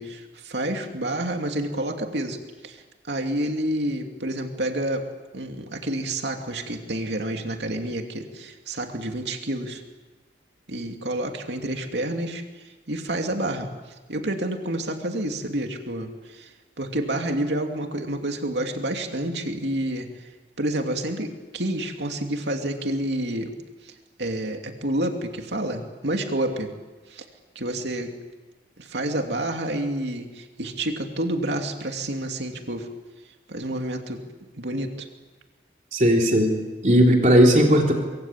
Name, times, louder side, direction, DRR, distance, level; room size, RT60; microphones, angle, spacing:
voice 1, 0.0-2.4 2.6-5.0 5.3-9.8 10.7-13.7 14.1-16.5 16.8-20.3 20.6-23.5 23.8-26.7 27.1-27.2 27.5-28.1 28.8-32.9 33.5-34.2 34.5-35.1, right 1 dB, 85° right, 3 dB, 2.7 m, -29 dB
voice 2, 35.9-36.5 36.8-37.9, equal, 45° right, 1 dB, 3.4 m, -16 dB
24.5 x 23.5 x 9.0 m, 1.3 s
head